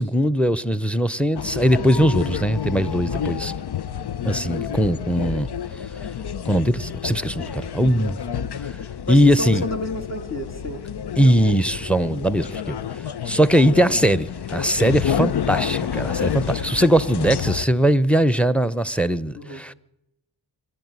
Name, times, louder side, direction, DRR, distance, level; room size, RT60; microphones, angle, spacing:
voice 1, 0.0-3.5 4.2-5.5 6.4-8.2 8.6-8.8 9.1-9.6 11.2-12.8 13.2-19.7, equal, 5° left, 0.8 m, -20 dB
sound 1, 1.4-17.7, left 8 dB, 85° left, 0.7 m, -29 dB
voice 2, 9.1-10.8 19.4-19.6, left 1 dB, 40° left, 2.6 m, -31 dB
25.5 x 13.0 x 9.6 m
wide cardioid pair, 55°, 39 cm